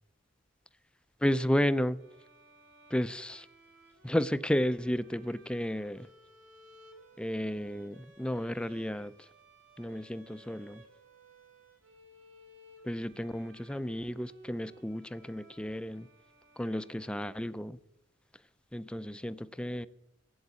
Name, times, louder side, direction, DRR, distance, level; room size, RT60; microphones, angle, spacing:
voice 1, 1.2-2.0 2.9-3.5 4.0-6.1 7.2-9.1 9.8-10.8 12.8-16.1 16.6-17.8 18.7-19.9, equal, 5° left, 0.4 m, -32 dB
sound 1, 2.0-17.6, right 1 dB, 75° right, 3.1 m, -59 dB
17.5 x 8.0 x 8.2 m
head